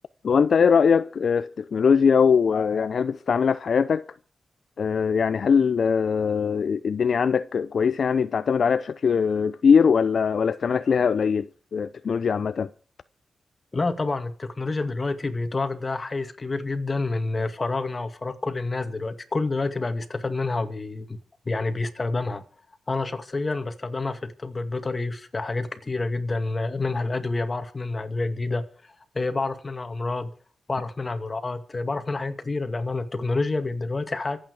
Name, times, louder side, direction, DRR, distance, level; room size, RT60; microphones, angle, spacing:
voice 1, 0.2-4.0 4.8-12.7, left 6 dB, 65° left, 0.6 m, -21 dB
voice 2, 13.7-21.2 21.5-22.4 22.9-30.3 30.7-34.4, left 3 dB, 30° left, 2.2 m, -28 dB
25.5 x 9.0 x 4.9 m
wide cardioid pair, 95°, 0 cm